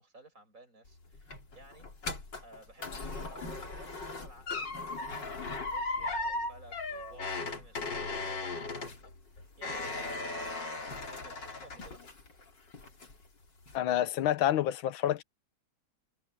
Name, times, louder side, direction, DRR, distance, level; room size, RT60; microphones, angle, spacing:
voice 1, 0.0-12.0, right 2 dB, 35° right, 8.2 m, -56 dB
sound 1, 0.9-12.4 12.7-13.3 13.7-13.8, left 3 dB, 55° left, 4.2 m, -37 dB
voice 2, 13.7-15.2, left 12 dB, 75° left, 1.6 m, -28 dB
omnidirectional pair, 2.3 m